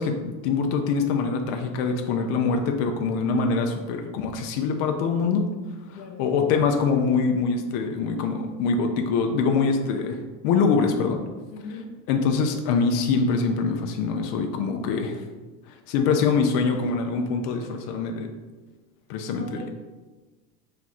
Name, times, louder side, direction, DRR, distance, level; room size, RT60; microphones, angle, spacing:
voice 1, 0.0-5.5 5.9-10.2 10.4-11.2 12.1-15.2 15.9-18.3 19.1-19.7, left 5 dB, 45° left, 4 dB, 0.4 m, -24 dB
voice 2, 5.7-6.2 11.5-11.8 19.3-19.7, left 4 dB, 90° left, 3 dB, 1.0 m, -41 dB
4.3 x 2.5 x 4.1 m, 1.3 s
supercardioid pair, 130°, 50 cm